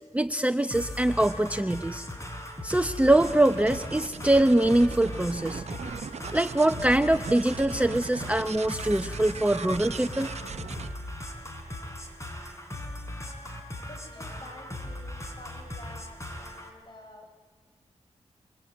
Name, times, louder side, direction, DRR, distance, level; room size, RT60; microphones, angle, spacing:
voice 1, 0.1-2.0 2.6-5.6 6.3-10.3, right 1 dB, 10° right, 8 dB, 0.9 m, -23 dB
sound 1, 0.7-16.7, left 1 dB, 25° left, 5.5 m, -39 dB
sound 2, 3.0-10.9, right 6 dB, 65° right, 0.7 m, -40 dB
voice 2, 13.8-17.3, left 2 dB, 40° left, 3 dB, 7.3 m, -49 dB
27.0 x 23.0 x 8.6 m, 1.4 s
cardioid pair, 65°, 12 cm